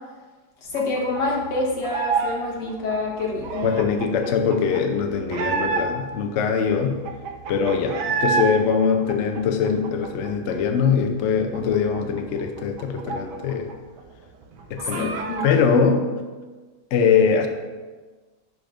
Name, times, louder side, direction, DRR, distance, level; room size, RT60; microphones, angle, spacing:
voice 1, 0.7-3.7 14.8-15.5, left 2 dB, 85° left, -2 dB, 1.9 m, -27 dB
sound 1, 0.7-2.4 2.6-6.2 6.6-6.7 6.8-8.5 8.8-10.5 10.8-11.0 11.3-13.7 14.0-14.1 14.4-15.6, right 5 dB, 75° right, 1.3 m, -29 dB
voice 2, 3.6-7.0 7.5-13.7 14.7-16.1 16.9-17.5, left 6 dB, 60° left, 5 dB, 0.7 m, -22 dB
10.5 x 5.1 x 2.6 m, 1.3 s
omnidirectional pair, 1.9 m